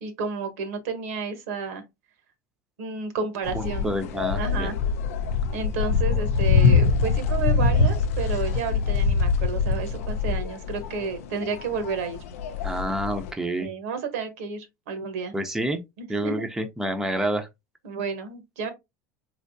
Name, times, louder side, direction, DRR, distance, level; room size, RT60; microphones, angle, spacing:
voice 1, 0.0-1.8 2.8-3.9 4.4-4.7 5.5-12.2 13.6-15.3 16.0-16.4 17.8-18.7, right 5 dB, 85° right, 1.0 m, -31 dB
sound 1, 3.4-13.3, left 5 dB, 85° left, 0.5 m, -24 dB
voice 2, 3.5-4.7 12.6-13.7 15.3-15.8 16.1-17.5, right 1 dB, 5° right, 0.6 m, -28 dB
3.4 x 2.8 x 2.7 m
supercardioid pair, 105°, 8 cm